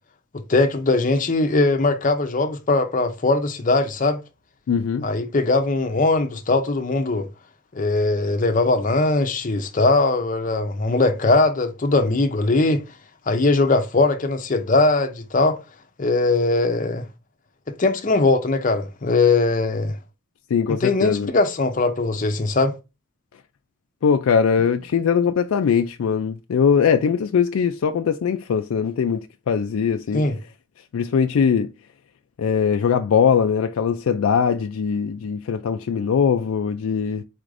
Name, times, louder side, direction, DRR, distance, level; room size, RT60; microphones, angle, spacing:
voice 1, 0.5-4.2 5.0-7.3 7.7-12.8 13.3-15.6 16.0-17.1 17.8-20.0 20.8-22.7 30.1-30.4, left 3 dB, 40° left, 0.6 m, -20 dB
voice 2, 4.7-5.1 20.5-21.3 24.0-30.2 30.9-31.7 32.4-37.2, left 6 dB, 85° left, 0.4 m, -21 dB
4.3 x 2.5 x 4.7 m
head